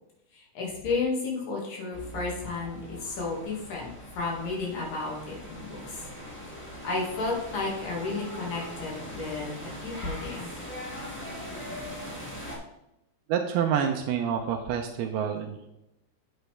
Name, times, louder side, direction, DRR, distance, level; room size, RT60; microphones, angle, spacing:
voice 1, 0.3-6.0 6.8-10.5, left 3 dB, 60° left, -2 dB, 3.3 m, -32 dB
sound 1, 1.9-12.6, equal, 15° left, 0.4 m, -41 dB
voice 2, 13.3-15.7, right 8 dB, 85° right, 4 dB, 2.4 m, -28 dB
8.1 x 7.9 x 3.3 m, 0.87 s
omnidirectional pair, 4.9 m